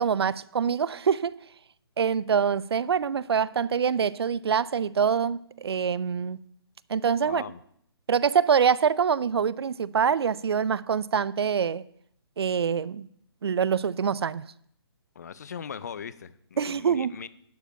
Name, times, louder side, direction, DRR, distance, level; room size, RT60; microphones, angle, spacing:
voice 1, 0.0-1.3 2.0-6.4 6.9-7.4 8.1-11.8 12.4-13.1 13.4-14.5 16.6-17.1, right 7 dB, 70° right, 0.4 m, -25 dB
voice 2, 7.2-7.6 15.2-17.3, left 7 dB, 40° left, 0.5 m, -39 dB
11.5 x 5.0 x 6.6 m
hypercardioid pair, 170°, 14 cm